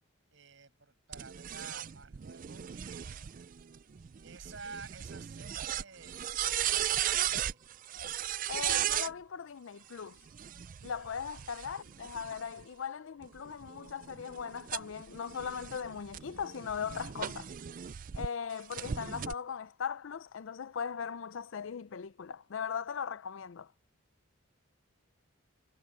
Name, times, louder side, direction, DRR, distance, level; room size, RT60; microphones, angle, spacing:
voice 1, 0.3-3.3 4.2-7.8 11.6-11.7, right 4 dB, 60° right, 5.6 m, -51 dB
sound 1, 1.1-9.1 10.3-12.6 13.2-18.3 18.7-19.3, right 11 dB, 40° right, 0.3 m, -36 dB
sound 2, 3.7-16.2, right 3 dB, 20° right, 6.1 m, -71 dB
voice 2, 8.5-10.2 10.8-17.5 18.1-23.7, left 7 dB, 65° left, 0.4 m, -39 dB
head